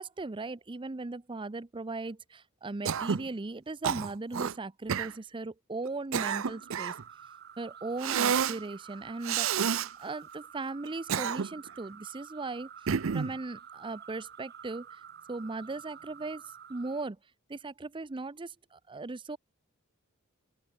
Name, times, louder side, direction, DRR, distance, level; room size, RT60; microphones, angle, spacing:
voice 1, 0.0-6.9 7.6-9.6 10.0-12.7 13.1-15.0 15.3-16.4 16.7-17.2 17.5-19.4, right 3 dB, 25° right, 0.6 m, -38 dB
Cough, 2.9-3.3 3.8-4.5 4.9-5.1 5.9-7.0 8.0-8.6 9.2-9.9 10.9-11.7 12.9-13.4, right 7 dB, 65° right, 0.6 m, -29 dB
sound 1, 6.2-17.1, right 8 dB, 50° right, 6.2 m, -50 dB
open air
head